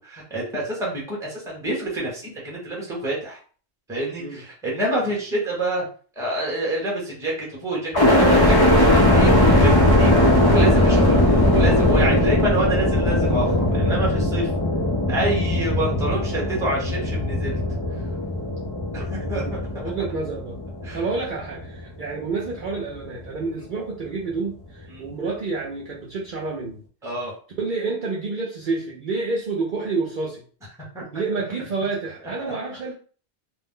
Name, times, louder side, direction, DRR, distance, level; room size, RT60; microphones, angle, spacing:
voice 1, 0.0-3.4 3.9-5.9 6.2-14.5 15.1-17.6 18.9-19.5 20.8-21.0 24.9-25.0 27.0-27.3 30.9-31.2, right 1 dB, 5° right, -4 dB, 0.8 m, -28 dB
sound 1, 7.9-21.9 22.5-23.2, left 1 dB, 35° left, 0.3 m, -19 dB
voice 2, 19.3-20.6 20.9-26.8 27.6-30.4 31.1-32.9, right 4 dB, 55° right, -3 dB, 0.6 m, -29 dB
2.5 x 2.0 x 3.6 m, 0.41 s
omnidirectional pair, 1.2 m